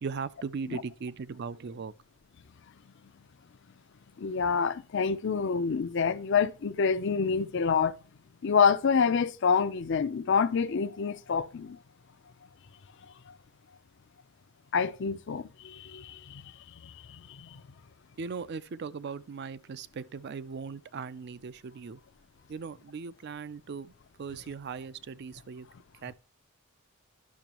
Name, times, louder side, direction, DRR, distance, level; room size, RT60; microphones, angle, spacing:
voice 1, 0.0-1.9 18.2-22.0 22.5-23.9 24.2-25.7 26.0-26.1, right 5 dB, 50° right, 0.4 m, -38 dB
voice 2, 4.2-8.0 8.4-11.8 13.3-13.4 14.7-16.5 16.8-17.6, left 6 dB, 55° left, 0.5 m, -27 dB
10.5 x 6.0 x 2.9 m
head